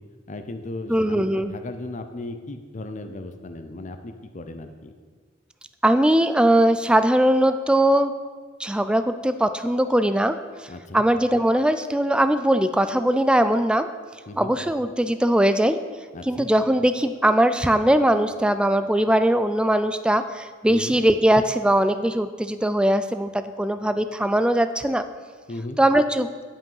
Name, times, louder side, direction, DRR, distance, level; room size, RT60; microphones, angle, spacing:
voice 1, 0.3-4.9 10.7-11.0 14.3-14.5 16.1-16.5 20.7-21.0 25.5-25.8, left 2 dB, 40° left, 8 dB, 0.6 m, -36 dB
voice 2, 0.9-1.5 5.8-8.1 8.6-10.4 10.9-13.9 14.4-15.8 16.2-25.0 25.8-26.3, right 1 dB, 5° right, 10 dB, 0.3 m, -20 dB
10.0 x 5.2 x 5.5 m, 1.5 s
head